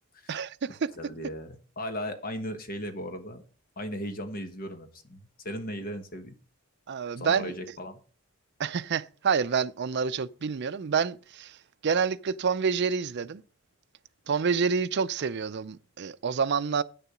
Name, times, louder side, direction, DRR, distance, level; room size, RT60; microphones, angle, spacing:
voice 1, 0.3-0.9 6.9-7.5 8.6-11.6 11.8-13.4 14.3-16.8, right 6 dB, 55° right, 0.5 m, -28 dB
voice 2, 1.0-3.4 3.8-6.3 7.2-8.0, equal, 45° left, 1.2 m, -37 dB
9.1 x 6.7 x 6.1 m
head